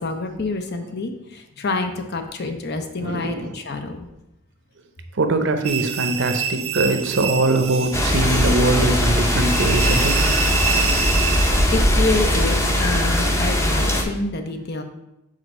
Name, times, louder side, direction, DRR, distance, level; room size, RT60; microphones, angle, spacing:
voice 1, 0.0-4.1 11.7-14.8, left 3 dB, 50° left, 6 dB, 0.7 m, -27 dB
voice 2, 3.0-3.5 5.2-10.2 10.7-10.9 12.3-12.5, right 2 dB, 60° right, 7 dB, 0.7 m, -22 dB
sound 1, 5.6-11.6, right 7 dB, 30° right, 0.4 m, -27 dB
sound 2, 7.9-14.0, equal, 15° left, 0.7 m, -20 dB
5.0 x 4.3 x 5.5 m, 0.87 s
head